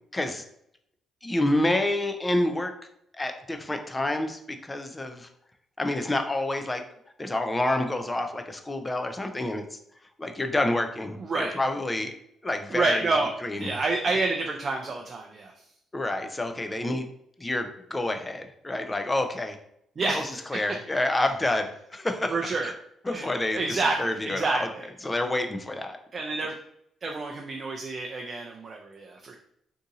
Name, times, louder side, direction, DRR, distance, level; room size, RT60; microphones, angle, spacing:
voice 1, 0.1-0.4 1.2-2.7 3.2-5.3 5.8-6.8 7.2-9.8 10.2-12.2 12.4-13.1 13.4-13.7 15.9-17.1 17.4-19.6 20.1-22.3 22.6-22.7 23.1-24.7 25.0-26.0, left 1 dB, 20° left, 6 dB, 0.4 m, -28 dB
voice 2, 11.2-11.6 12.7-13.3 13.6-15.5 20.0-20.4 22.3-22.7 23.1-24.9 26.1-26.5 27.0-29.4, right 3 dB, 40° right, 1 dB, 0.4 m, -28 dB
2.7 x 2.6 x 3.7 m, 0.74 s
cardioid pair, 90°, 0 cm